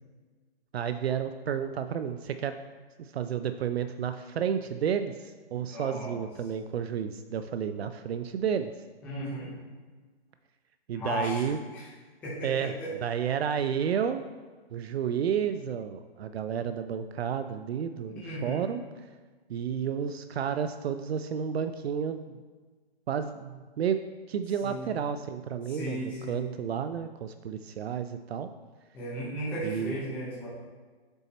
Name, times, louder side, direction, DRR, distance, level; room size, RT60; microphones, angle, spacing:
voice 1, 0.7-2.6 3.0-8.7 10.9-11.6 12.4-12.7 13.0-14.2 14.7-18.8 19.5-22.4 23.1-24.0 24.3-28.5 29.6-30.0, right 8 dB, 80° right, 9 dB, 0.5 m, -31 dB
voice 2, 5.7-6.2 9.0-9.5 10.9-11.9 12.2-12.9 18.1-18.6 24.6-24.9 25.7-26.4 28.9-30.5, equal, 5° left, -8 dB, 0.6 m, -36 dB
7.0 x 4.2 x 4.1 m, 1.4 s
hypercardioid pair, 165°, 31 cm